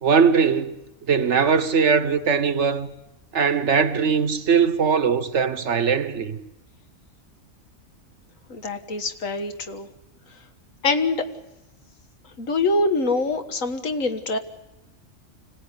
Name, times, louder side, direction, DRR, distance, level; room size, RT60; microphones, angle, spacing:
voice 1, 0.0-0.8 1.1-2.9 3.3-6.4, right 6 dB, 60° right, 1.3 m, -20 dB
voice 2, 8.5-9.9 10.8-11.3 12.4-14.4, left 3 dB, 75° left, 2.0 m, -24 dB
25.5 x 17.5 x 9.9 m
omnidirectional pair, 1.4 m